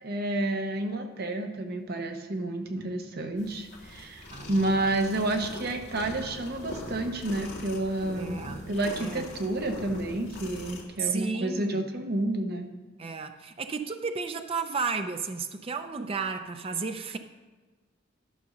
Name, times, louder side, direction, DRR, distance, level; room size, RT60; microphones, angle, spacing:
voice 1, 0.0-12.7, right 2 dB, 50° right, 0.9 m, -30 dB
sound 1, 3.4-10.8, left 1 dB, 60° left, 2.4 m, -42 dB
voice 2, 4.3-4.8 8.2-9.4 11.0-11.9 13.0-17.2, right 5 dB, 30° right, 0.4 m, -33 dB
11.0 x 5.2 x 6.4 m
head